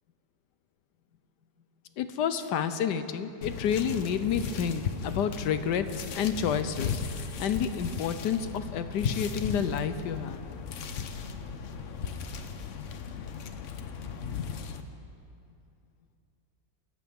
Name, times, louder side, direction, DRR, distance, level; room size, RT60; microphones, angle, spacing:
voice 1, 2.0-10.4, left 7 dB, 75° left, 11 dB, 1.3 m, -30 dB
sound 1, 3.4-14.8, left 6 dB, 55° left, 0.9 m, -36 dB
25.5 x 13.5 x 3.6 m, 2.6 s
omnidirectional pair, 1.9 m